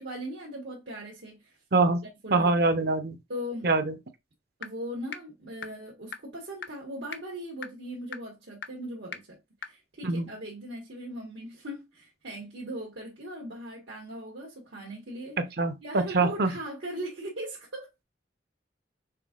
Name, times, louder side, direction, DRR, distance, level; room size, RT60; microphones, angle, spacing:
voice 1, 0.0-1.6 2.2-2.5 3.3-3.7 4.6-9.4 9.6-15.4 15.8-17.9, equal, 80° right, 1.3 m, -39 dB
voice 2, 1.7-2.0 2.3-3.2 3.6-3.9 10.0-10.3 15.4-16.5, right 3 dB, 55° right, 0.7 m, -24 dB
sound 1, 4.6-4.7 5.1-5.2 5.6-5.7 6.1-6.2 6.6-6.7 7.1-7.2 7.6-7.7 8.1-8.2 8.6-8.7 9.1-9.2 9.6-9.7, left 7 dB, 65° left, 0.5 m, -36 dB
5.8 x 3.5 x 2.4 m
head